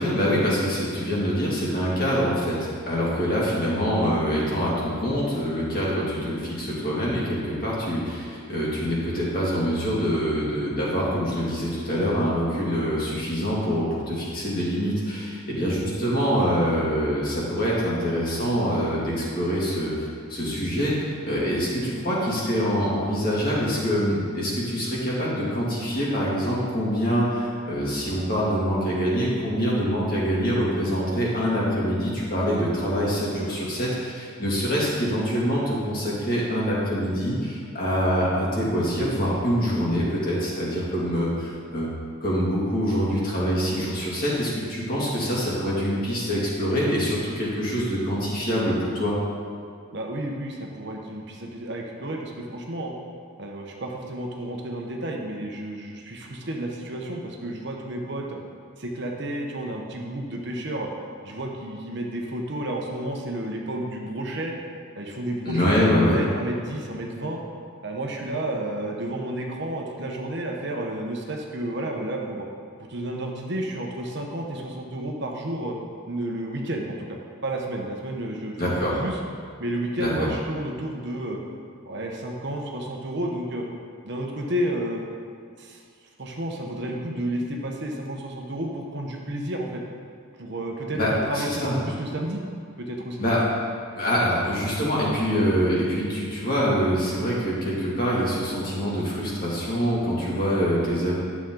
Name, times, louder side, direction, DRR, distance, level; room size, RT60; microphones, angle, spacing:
voice 1, 0.0-19.9 20.3-21.0 21.2-41.9 42.2-49.2 65.4-66.2 78.6-79.0 80.0-80.3 90.9-91.8 93.2-93.4 94.0-101.2, equal, 45° left, -6 dB, 2.4 m, -25 dB
voice 2, 49.9-52.9 53.4-58.4 58.8-60.9 61.2-64.5 64.9-67.4 67.8-72.5 72.9-75.8 76.1-79.2 79.6-81.4 81.9-83.6 84.0-85.0 85.6-85.8 86.2-89.8 90.4-92.4 92.8-93.2, right 1 dB, 55° right, 0 dB, 1.0 m, -31 dB
11.5 x 7.3 x 3.9 m, 2.2 s
head